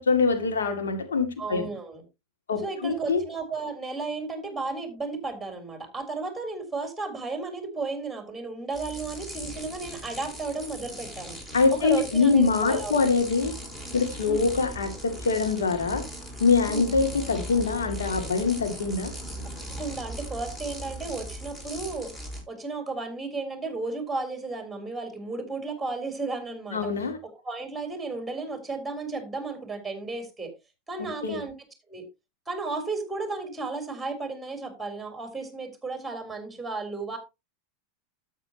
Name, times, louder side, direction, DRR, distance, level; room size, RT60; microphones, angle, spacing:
voice 1, 0.0-1.7 2.5-3.2 11.5-13.5 13.9-16.0 16.4-19.1 26.7-27.2 31.0-31.4, left 4 dB, 85° left, 6 dB, 2.2 m, -24 dB
voice 2, 1.4-2.0 2.6-11.4 11.7-13.2 14.3-14.5 16.7-16.9 19.4-22.1 22.5-26.8 27.2-30.5 30.9-31.5 31.9-32.0 32.5-37.2, right 3 dB, 5° right, 5 dB, 3.6 m, -34 dB
sound 1, 8.7-22.4, equal, 15° left, 5.1 m, -39 dB
12.5 x 7.9 x 2.9 m, 0.24 s
hypercardioid pair, 95°, 0 cm